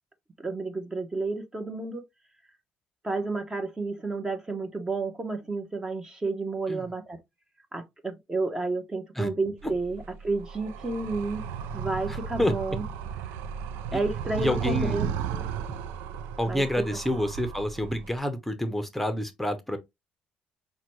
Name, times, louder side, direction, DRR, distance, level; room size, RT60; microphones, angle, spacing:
voice 1, 0.4-2.0 3.0-7.2 7.7-11.4 11.7-12.8 13.9-15.5 16.5-16.6 16.9-17.0, right 3 dB, 20° right, 1.0 m, -31 dB
Animal, 9.6-18.2, right 8 dB, 90° right, 0.4 m, -35 dB
voice 2, 12.1-12.5 13.9-14.0 14.4-15.0 16.4-19.8, left 1 dB, 5° left, 0.8 m, -28 dB
5.6 x 2.3 x 3.1 m
supercardioid pair, 75°, 3 cm